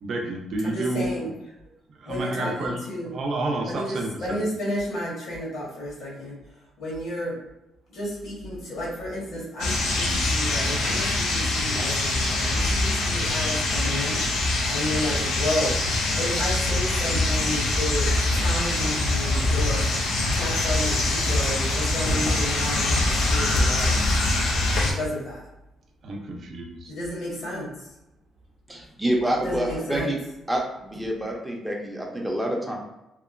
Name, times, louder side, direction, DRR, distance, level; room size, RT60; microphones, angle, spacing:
voice 1, 0.0-1.3 1.9-2.8 3.0-4.4 26.0-26.9, right 2 dB, 60° right, 1 dB, 0.6 m, -30 dB
voice 2, 0.6-1.3 2.0-3.1 3.7-6.4 6.8-7.4 7.9-20.0 20.3-24.0 24.8-25.4 26.9-27.9 29.4-30.1, left 1 dB, 75° left, -5 dB, 1.3 m, -32 dB
sound 1, 9.6-24.9, left 2 dB, 90° left, 0.5 m, -24 dB
voice 3, 28.7-30.2 30.5-32.8, right 1 dB, 5° right, -1 dB, 0.6 m, -27 dB
2.8 x 2.0 x 2.5 m, 0.91 s
cardioid pair, 90°, 0 cm